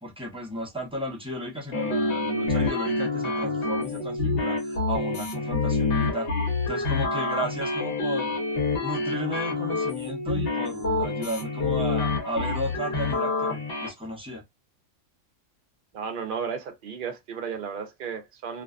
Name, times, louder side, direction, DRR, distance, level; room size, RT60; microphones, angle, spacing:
voice 1, 0.0-6.3 6.7-8.4 8.8-14.4, equal, 5° right, 0.7 m, -34 dB
sound 1, 1.7-13.9, left 3 dB, 55° left, 1.0 m, -27 dB
voice 2, 15.9-18.6, right 6 dB, 55° right, 0.6 m, -34 dB
2.5 x 2.2 x 2.4 m
omnidirectional pair, 1.2 m